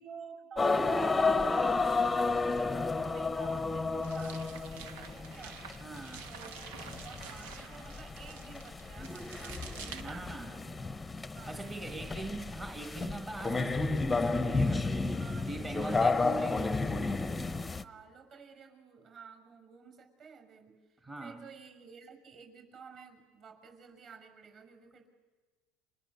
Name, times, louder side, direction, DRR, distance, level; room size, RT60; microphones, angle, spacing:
voice 1, 0.0-5.6 6.3-11.0 11.3-11.6 15.2-16.4 17.8-25.1, right 5 dB, 40° right, 6 dB, 5.9 m, -52 dB
sound 1, 0.6-17.8, left 3 dB, 10° left, 0.9 m, -32 dB
sound 2, 4.0-10.5, right 7 dB, 90° right, 1.6 m, -49 dB
voice 2, 5.8-6.3 9.9-10.5 11.5-16.8 21.0-21.5, right 2 dB, 15° right, 4 dB, 1.5 m, -42 dB
30.0 x 26.5 x 6.9 m, 1.4 s
supercardioid pair, 140°, 0 cm